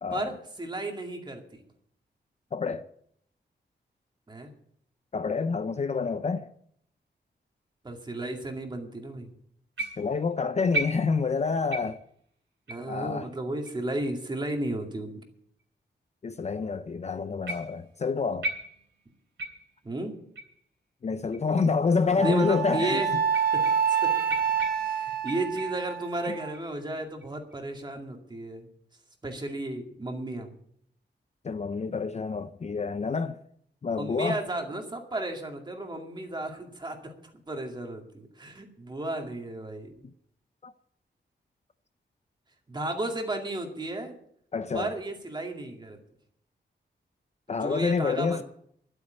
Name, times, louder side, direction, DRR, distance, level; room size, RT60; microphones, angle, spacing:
voice 1, 0.1-1.6 4.3-4.5 7.8-9.3 12.7-15.2 19.8-20.2 22.2-23.1 23.5-24.1 24.7-28.7 29.2-30.5 34.0-39.9 42.7-44.2 44.7-46.0 47.5-48.4, right 2 dB, 25° right, 2.2 m, -34 dB
voice 2, 2.5-2.8 5.1-6.5 10.0-12.0 12.9-13.3 16.2-18.5 21.0-23.0 31.4-33.4 33.8-34.4 40.6-40.7 44.5-44.9 47.5-48.4, left 4 dB, 35° left, 0.5 m, -27 dB
sound 1, 9.8-10.2 10.7-11.4 11.7-12.1 12.7-12.9 13.6-13.7 14.6-14.7 15.6-15.7 17.5-17.9 18.4-19.0 19.4-19.8 20.4-20.6 21.3-21.4 22.3-22.4 23.3-24.0 24.3-25.8 26.2-26.7 27.2-27.6, right 2 dB, 80° right, 3.2 m, -36 dB
Wind instrument woodwind instrument, 22.2-26.5, right 7 dB, 55° right, 1.0 m, -27 dB
12.0 x 8.4 x 9.2 m
wide cardioid pair, 165°, 18 cm